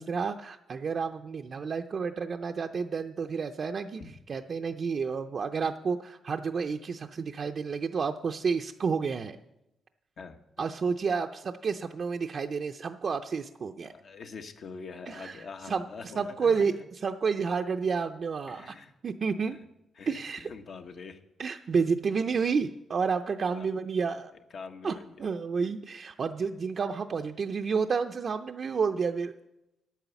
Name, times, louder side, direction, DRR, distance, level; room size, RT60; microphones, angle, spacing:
voice 1, 0.0-4.0 4.3-9.4 10.6-13.9 15.1-15.8 16.2-18.7 19.0-19.6 20.1-20.5 21.4-24.3 24.8-29.3, right 5 dB, 55° right, 4 dB, 0.5 m, -30 dB
voice 2, 10.2-10.7 13.8-16.7 18.5-18.9 19.9-21.2 22.3-22.4 23.5-23.7 24.5-25.3, left 5 dB, 65° left, 6 dB, 1.2 m, -44 dB
10.5 x 9.0 x 7.0 m, 0.90 s
cardioid pair, 85°, 0 cm